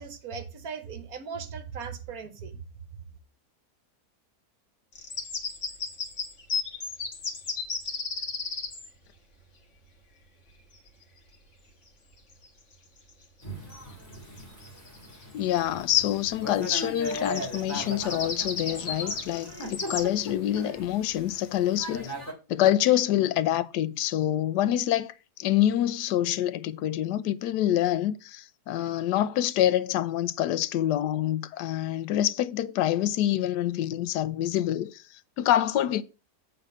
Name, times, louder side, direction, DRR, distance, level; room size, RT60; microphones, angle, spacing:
voice 1, 0.0-2.6, right 6 dB, 65° right, 1.4 m, -38 dB
sound 1, 4.9-8.9 12.3-12.5 13.0-13.4 13.7-13.8 14.1-15.2 16.6-20.0, left 4 dB, 45° left, 1.7 m, -34 dB
Thunder / Rain, 13.4-22.3, equal, 10° left, 2.9 m, -39 dB
voice 2, 15.3-22.1 22.5-25.1 25.4-36.0, left 12 dB, 90° left, 1.2 m, -26 dB
7.9 x 4.1 x 6.4 m
omnidirectional pair, 1.7 m